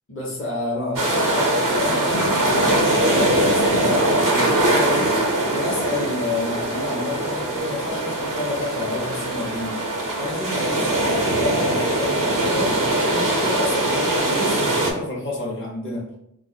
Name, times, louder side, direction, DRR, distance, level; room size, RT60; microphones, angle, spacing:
voice 1, 0.1-5.1 5.4-9.8 10.1-10.8 11.3-12.8 13.0-16.1, left 2 dB, 35° left, -4 dB, 0.8 m, -29 dB
sound 1, 1.0-14.9, right 1 dB, 70° right, 0.7 m, -22 dB
sound 2, 2.1-6.9, left 4 dB, 70° left, 0.5 m, -35 dB
2.4 x 2.1 x 3.9 m, 0.77 s
wide cardioid pair, 50°, 34 cm